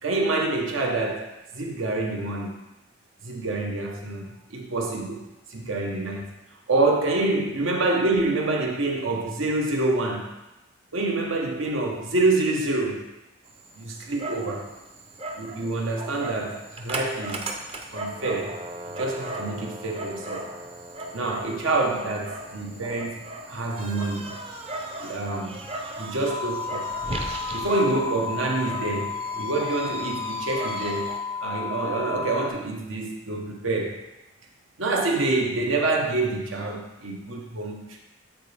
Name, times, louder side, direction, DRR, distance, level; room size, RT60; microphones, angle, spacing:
voice 1, 0.0-2.6 3.2-6.3 6.7-10.3 10.9-13.1 13.8-14.7 15.4-17.5 17.9-18.6 18.9-20.5 21.1-23.2 23.5-24.4 25.0-25.6 26.0-26.9 27.5-34.0 34.8-38.0, right 2 dB, 85° right, 1 dB, 1.1 m, -27 dB
Dog, 13.4-31.2, right 1 dB, 30° right, 0.6 m, -37 dB
sound 1, 26.3-32.5, left 5 dB, 20° left, 0.4 m, -32 dB
9.1 x 4.0 x 3.4 m, 0.98 s
head